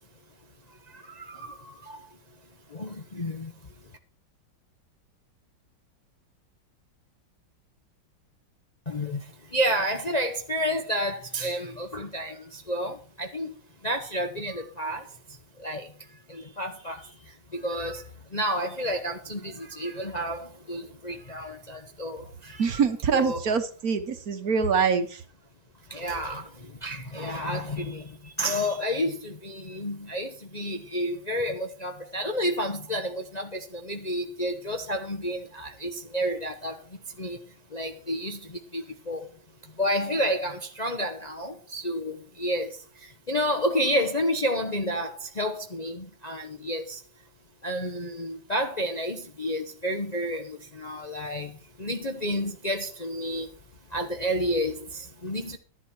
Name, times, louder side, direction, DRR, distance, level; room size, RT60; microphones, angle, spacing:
voice 1, 1.2-1.5 1.9-2.0 2.7-3.5 8.9-9.2 9.5-13.5 13.8-15.0 15.6-15.9 16.3-17.0 17.5-18.0 18.3-22.8 23.1-23.4 25.9-26.5 26.8-28.1 28.4-36.8 37.2-37.4 37.7-38.4 38.7-39.2 39.8-42.7 43.3-47.0 47.6-51.5 51.8-53.5 53.9-55.6, equal, 35° left, 0.7 m, -30 dB
voice 2, 22.6-25.2, right 6 dB, 55° right, 1.4 m, -25 dB
11.5 x 11.0 x 4.6 m
omnidirectional pair, 2.0 m